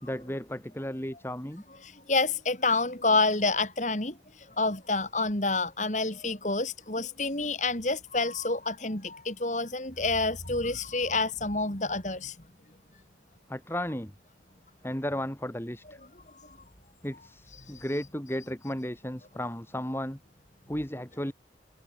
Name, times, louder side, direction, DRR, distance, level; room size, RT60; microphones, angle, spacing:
voice 1, 0.0-1.6 13.5-14.1 14.8-16.0 17.0-20.2 20.7-21.3, equal, 15° left, 2.7 m, -34 dB
voice 2, 1.8-4.1 4.6-12.3, left 3 dB, 40° left, 4.1 m, -28 dB
head